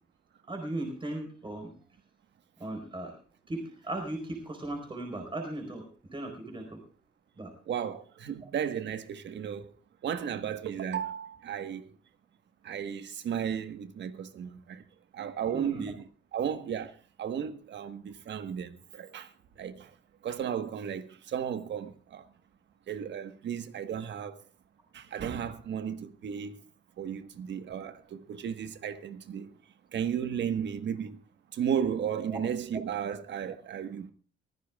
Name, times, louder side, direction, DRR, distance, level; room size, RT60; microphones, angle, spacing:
voice 1, 0.5-1.7 2.6-3.1 3.5-6.8 7.4-7.5 15.5-15.9 32.3-32.4, right 1 dB, 25° right, 4.9 m, -37 dB
voice 2, 7.7-9.8 10.0-11.9 12.6-14.8 15.1-19.9 20.2-22.3 22.9-24.4 24.9-26.6 27.0-29.5 29.9-31.2 31.5-34.1, right 8 dB, 65° right, 1.4 m, -34 dB
24.0 x 15.5 x 2.4 m
cardioid pair, 90°, 20 cm